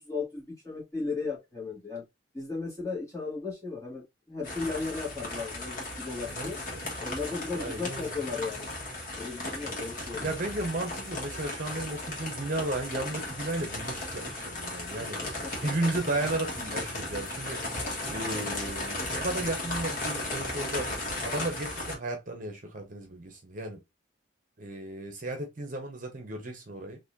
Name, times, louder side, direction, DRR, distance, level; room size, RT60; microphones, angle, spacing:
voice 1, 0.0-2.0 2.3-6.6 7.0-8.7 9.2-10.4 15.0-15.9 18.2-18.6, left 4 dB, 15° left, 1.7 m, -36 dB
sound 1, 4.4-22.0, left 2 dB, 45° left, 1.4 m, -36 dB
voice 2, 6.3-6.9 7.5-8.2 10.1-15.2 15.6-17.6 18.1-20.9 21.2-23.8 24.6-27.0, right 2 dB, 45° right, 0.8 m, -34 dB
4.1 x 2.6 x 2.5 m
head